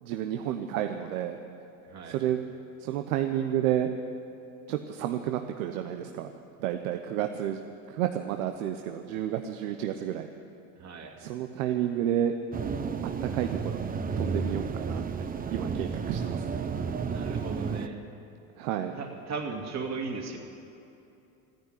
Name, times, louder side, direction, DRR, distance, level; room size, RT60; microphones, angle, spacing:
voice 1, 0.0-1.4 2.0-2.4 2.8-3.9 4.7-6.3 6.6-7.6 7.9-10.3 11.2-12.3 13.2-13.8 14.2-16.6 18.6-18.9, right 11 dB, 80° right, 6 dB, 0.9 m, -31 dB
voice 2, 10.8-11.1 17.0-18.0 19.0-20.4, right 4 dB, 40° right, 1 dB, 2.6 m, -36 dB
sound 1, 12.5-17.9, right 5 dB, 20° right, 0.7 m, -32 dB
14.0 x 10.5 x 10.0 m, 2.8 s
supercardioid pair, 95°, 41 cm